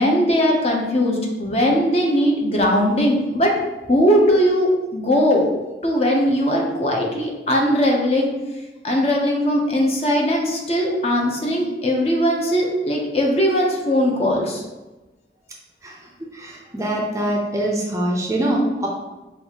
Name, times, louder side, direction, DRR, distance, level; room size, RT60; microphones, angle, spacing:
voice 1, 0.0-3.5 3.9-5.5 5.8-8.3 8.8-14.6, equal, 35° left, 0 dB, 0.6 m, -19 dB
voice 2, 16.3-18.9, right 1 dB, 15° right, -1 dB, 0.5 m, -23 dB
5.2 x 2.4 x 2.8 m, 1.1 s
head